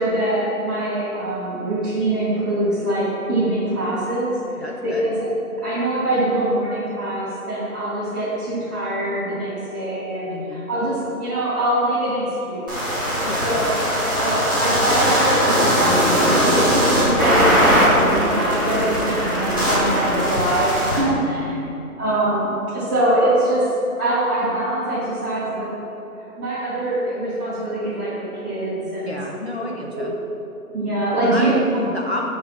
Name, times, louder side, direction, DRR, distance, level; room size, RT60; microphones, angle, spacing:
voice 1, 0.0-5.3 5.6-12.9 13.4-13.7 14.1-21.6 22.0-23.6 24.0-25.7 26.4-29.2 29.9-30.0 30.7-31.5, right 1 dB, 5° right, -15 dB, 0.9 m, -23 dB
voice 2, 4.6-5.1 10.3-10.7 13.2-13.6 21.0-21.9 29.0-30.1 31.3-32.3, left 1 dB, 50° left, 0 dB, 0.5 m, -30 dB
sound 1, 12.7-21.0, equal, 15° left, 1.1 m, -19 dB
6.6 x 4.8 x 5.3 m, 2.9 s
hypercardioid pair, 170°, 44 cm